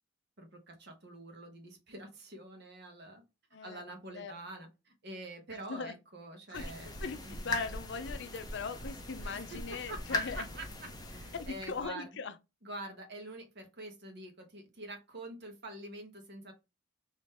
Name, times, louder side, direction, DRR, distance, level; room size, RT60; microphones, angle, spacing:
voice 1, 0.4-3.2 3.6-6.9 7.2-7.4 9.2-12.1 12.6-16.5, right 2 dB, 55° right, 1.3 m, -46 dB
voice 2, 3.5-4.3 5.5-5.9 6.5-6.7 7.0-10.5 11.3-12.3, left 5 dB, 60° left, 0.6 m, -40 dB
sound 1, 6.5-11.9, left 2 dB, 20° left, 0.9 m, -40 dB
3.8 x 3.1 x 4.2 m
head